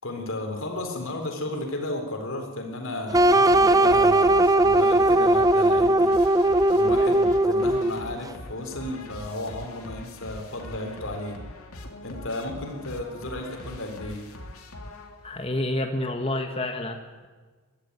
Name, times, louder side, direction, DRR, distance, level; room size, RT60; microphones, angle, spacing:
voice 1, 0.0-6.2 6.8-11.4 12.0-14.2, left 1 dB, 65° left, 3 dB, 4.1 m, -33 dB
sound 1, 3.1-15.5, left 1 dB, 85° left, 3.0 m, -42 dB
sound 2, 3.1-8.1, right 1 dB, 15° right, 0.6 m, -19 dB
voice 2, 15.2-17.3, left 1 dB, 25° left, 5 dB, 1.6 m, -29 dB
21.5 x 13.5 x 9.8 m, 1.4 s
head